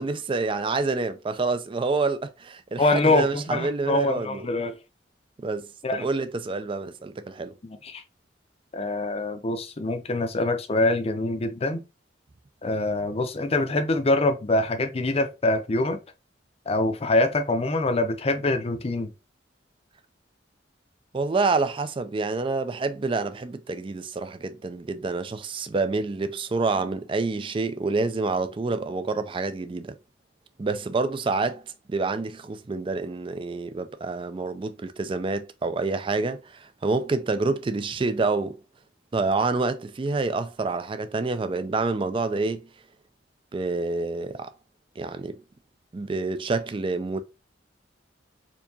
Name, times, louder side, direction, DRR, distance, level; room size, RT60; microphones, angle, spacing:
voice 1, 0.0-4.5 5.4-7.5 21.1-30.0 30.6-31.6 31.9-38.6 39.1-42.6 43.5-44.5 45.0-45.4 45.9-47.2, right 3 dB, 30° right, 0.4 m, -27 dB
voice 2, 2.8-4.8 5.8-6.0 7.6-8.0 8.7-11.8 12.6-16.0 16.7-19.1, left 2 dB, 35° left, 0.6 m, -24 dB
4.4 x 2.8 x 2.7 m
head